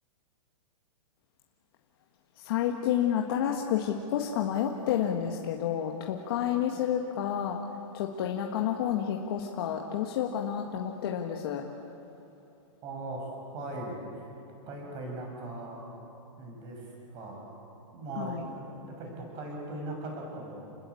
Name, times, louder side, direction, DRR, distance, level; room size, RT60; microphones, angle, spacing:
voice 1, 2.4-7.6 7.9-11.6 18.2-18.4, left 9 dB, 45° left, 1 dB, 1.7 m, -30 dB
voice 2, 12.8-14.3 14.7-15.8 16.4-17.4 17.9-20.6, right 2 dB, 25° right, 0 dB, 6.9 m, -39 dB
29.5 x 20.5 x 8.6 m, 2.9 s
hypercardioid pair, 170°, 17 cm